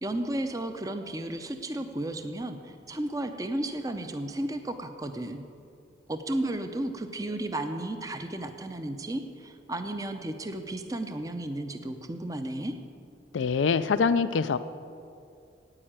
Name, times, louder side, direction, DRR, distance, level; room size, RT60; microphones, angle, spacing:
voice 1, 0.0-5.4 6.1-12.7, right 1 dB, 20° right, 7 dB, 0.6 m, -33 dB
voice 2, 13.3-14.6, left 5 dB, 85° left, 13 dB, 0.4 m, -24 dB
9.7 x 8.8 x 8.8 m, 2.4 s
head